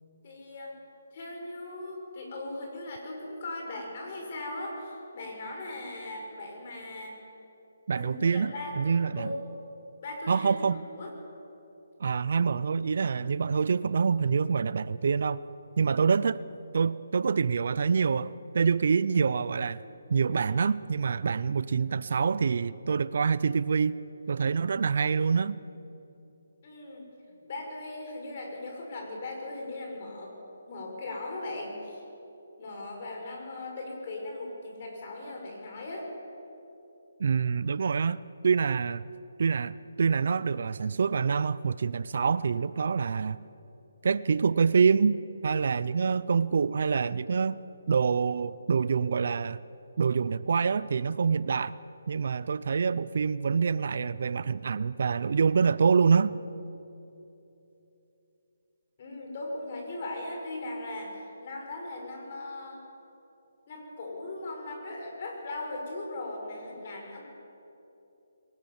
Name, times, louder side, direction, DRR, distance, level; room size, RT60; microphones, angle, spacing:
voice 1, 0.2-0.8 1.1-7.2 7.9-9.4 10.0-11.1 26.6-27.0 27.4-30.3 30.7-32.0 32.6-36.1 59.0-62.8 63.7-67.2, left 2 dB, 40° left, 1 dB, 5.6 m, -38 dB
voice 2, 7.9-9.3 10.3-10.8 12.0-15.4 15.8-16.4 16.7-19.8 20.1-24.0 24.3-25.6 37.2-39.0 39.4-43.4 44.0-47.6 47.9-49.6 50.0-51.7 52.1-56.3, right 5 dB, 60° right, 17 dB, 0.5 m, -26 dB
22.5 x 19.0 x 7.2 m, 3.0 s
hypercardioid pair, 160°, 0 cm